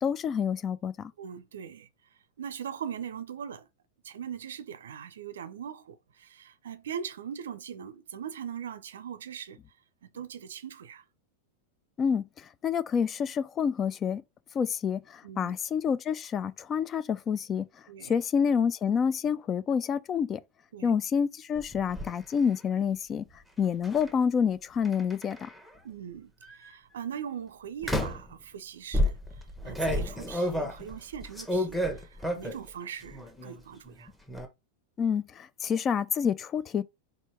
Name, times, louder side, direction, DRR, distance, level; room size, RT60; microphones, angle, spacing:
voice 1, 0.0-1.1 12.0-12.2 12.6-14.2 14.5-17.6 18.0-20.4 20.8-23.2 23.6-25.5 35.0-36.8, left 7 dB, 25° left, 0.4 m, -28 dB
voice 2, 1.2-1.9 2.4-3.7 4.0-9.6 10.0-11.0 15.2-15.6 17.9-18.2 20.7-21.0 25.8-34.1, right 8 dB, 65° right, 0.5 m, -40 dB
sound 1, 21.5-22.1 23.8-24.1 24.8-25.7 26.4-26.7 27.8-28.3 28.9-32.7 33.0-33.6 33.9-34.5, equal, 5° left, 1.1 m, -31 dB
4.4 x 2.7 x 4.4 m
figure-of-eight pair, 90°, 0 cm